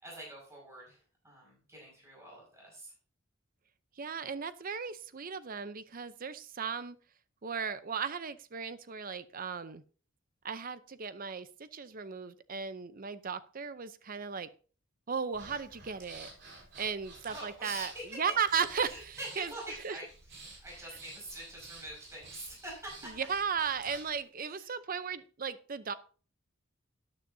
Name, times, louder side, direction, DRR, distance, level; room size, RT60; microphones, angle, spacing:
voice 1, 0.0-2.9 17.3-18.2 18.8-23.1 24.5-24.8, right 1 dB, 15° right, -4 dB, 5.5 m, -45 dB
voice 2, 4.0-7.0 7.4-9.8 10.4-14.5 15.1-16.3 16.8-19.5 19.8-20.0 23.2-25.9, right 6 dB, 45° right, 13 dB, 0.6 m, -36 dB
Breathing, 15.3-24.2, right 3 dB, 60° right, 3.8 m, -52 dB
12.5 x 9.7 x 2.7 m, 0.40 s
head